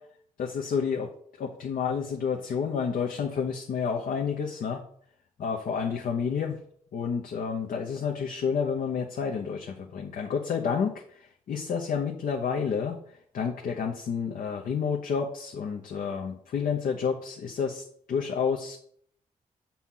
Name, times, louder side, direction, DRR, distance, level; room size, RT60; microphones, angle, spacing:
voice 1, 0.4-1.1 1.4-4.8 5.4-6.6 6.9-13.0 13.3-18.8, left 6 dB, 75° left, 1 dB, 0.9 m, -30 dB
7.4 x 4.3 x 5.6 m, 0.63 s
cardioid pair, 55°, 14 cm